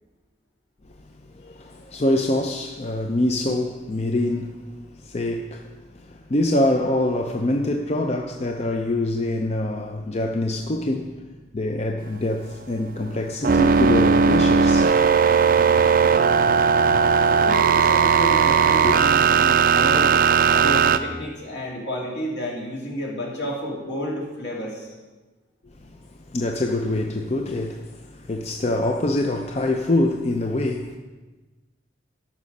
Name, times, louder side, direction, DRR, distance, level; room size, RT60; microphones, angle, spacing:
voice 1, 1.3-4.6 4.9-11.2 11.5-14.9 15.8-15.9 16.5-16.6 16.9-17.0 18.8-18.9 25.8-31.0, left 1 dB, 35° left, 0.5 m, -25 dB
sound 1, 13.4-21.0, right 5 dB, 50° right, 0.5 m, -17 dB
voice 2, 17.2-20.1 20.5-24.9, equal, 70° left, 2.8 m, -31 dB
13.0 x 6.2 x 5.3 m
head